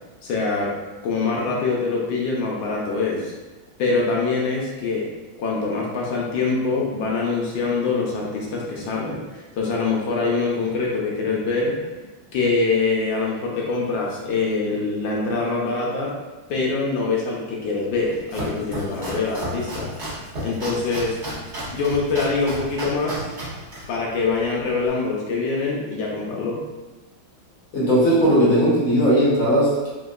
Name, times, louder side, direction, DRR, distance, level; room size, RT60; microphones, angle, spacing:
voice 1, 0.2-0.7 1.0-3.3 3.8-5.1 5.4-11.7 12.3-16.1 16.5-19.9 20.4-21.2 21.7-23.3 23.9-26.6, left 4 dB, 75° left, -3 dB, 1.3 m, -24 dB
Domestic sounds home sounds, 17.9-24.9, right 1 dB, 40° right, 1.2 m, -33 dB
voice 2, 27.7-29.9, equal, 55° left, -7 dB, 1.1 m, -18 dB
3.4 x 2.9 x 2.3 m, 1.2 s
omnidirectional pair, 2.2 m